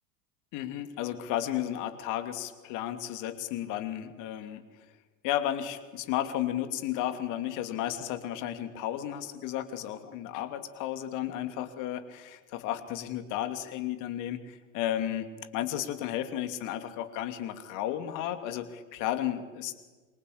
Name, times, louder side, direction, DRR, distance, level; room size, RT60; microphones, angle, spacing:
voice 1, 0.5-4.6 5.2-19.7, left 12 dB, 50° left, 9 dB, 2.8 m, -33 dB
27.0 x 24.5 x 8.6 m, 1.3 s
figure-of-eight pair, 80°, 39 cm